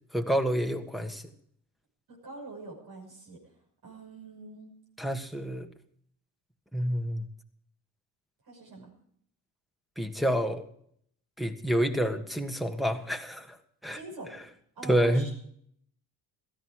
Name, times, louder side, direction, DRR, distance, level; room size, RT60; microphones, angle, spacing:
voice 1, 0.1-1.2 5.0-5.7 6.7-7.2 10.0-10.6 11.4-13.6 13.8-14.0 14.3-14.4 14.8-15.3, equal, ahead, 7 dB, 1.6 m, -28 dB
voice 2, 2.1-3.4 3.8-4.7 8.5-8.9 13.9-14.3 14.8-15.3, right 3 dB, 65° right, -1 dB, 6.1 m, -44 dB
16.5 x 14.5 x 4.9 m, 0.65 s
cardioid pair, 120°, 39 cm